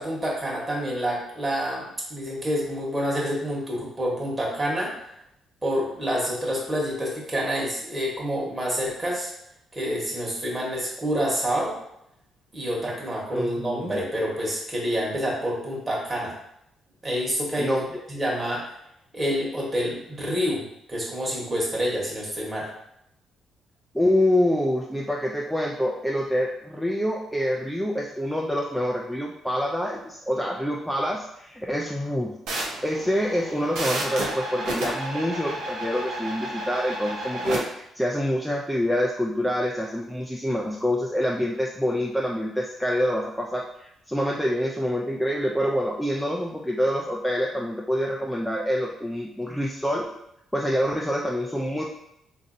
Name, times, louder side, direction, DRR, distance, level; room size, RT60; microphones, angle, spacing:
voice 1, 0.0-4.9 5.6-9.3 9.7-11.8 12.5-16.4 17.0-17.8 18.1-18.7 19.1-22.7, equal, 25° right, -4 dB, 1.3 m, -28 dB
voice 2, 13.3-14.0 17.6-17.8 23.9-32.4 32.8-50.1 50.5-51.8, equal, ahead, -2 dB, 0.4 m, -26 dB
sound 1, 32.5-37.6, right 1 dB, 85° right, 0.8 m, -32 dB
3.9 x 2.6 x 2.6 m, 0.78 s
cardioid pair, 90°, 0 cm